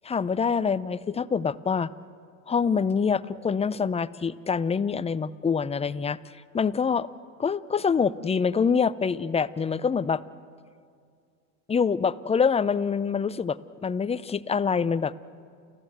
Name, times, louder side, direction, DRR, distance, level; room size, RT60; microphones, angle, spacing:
voice 1, 0.1-1.9 2.5-6.2 6.5-7.1 7.4-10.2 11.7-15.1, left 6 dB, 15° left, 16 dB, 0.5 m, -25 dB
30.0 x 14.5 x 7.9 m, 2.2 s
supercardioid pair, 90°, 40 cm